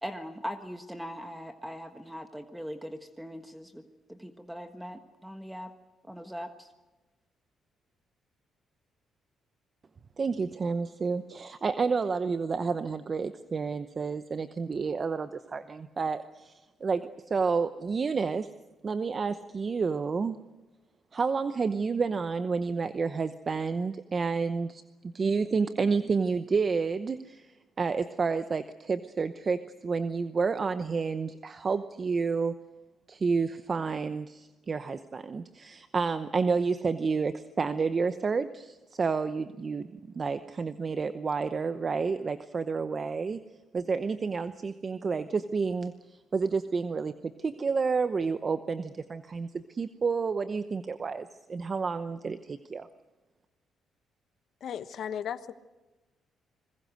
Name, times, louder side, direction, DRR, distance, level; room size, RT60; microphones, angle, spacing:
voice 1, 0.0-3.8 4.1-5.7 6.1-6.7, equal, 5° right, 7 dB, 1.4 m, -40 dB
voice 2, 10.2-17.0 17.3-18.5 18.8-20.4 21.1-24.8 25.1-32.5 33.1-39.9 40.1-43.4 43.7-52.9, right 5 dB, 40° right, 11 dB, 0.9 m, -30 dB
voice 3, 54.6-55.5, left 9 dB, 65° left, 12 dB, 1.2 m, -35 dB
27.5 x 21.0 x 6.5 m, 1.1 s
cardioid pair, 90°, 0 cm